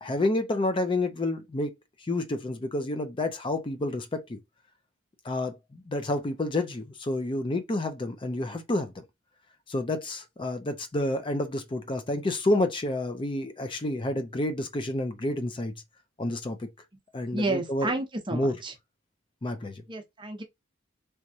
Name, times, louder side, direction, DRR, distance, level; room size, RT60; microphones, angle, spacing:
voice 1, 0.0-1.7 2.1-4.4 5.2-8.9 9.7-15.7 16.2-16.7 17.1-17.9 18.3-18.5 19.4-19.8, left 2 dB, 25° left, 0.4 m, -29 dB
voice 2, 17.3-18.7 19.9-20.4, right 2 dB, 25° right, 0.7 m, -31 dB
3.4 x 3.0 x 2.6 m
head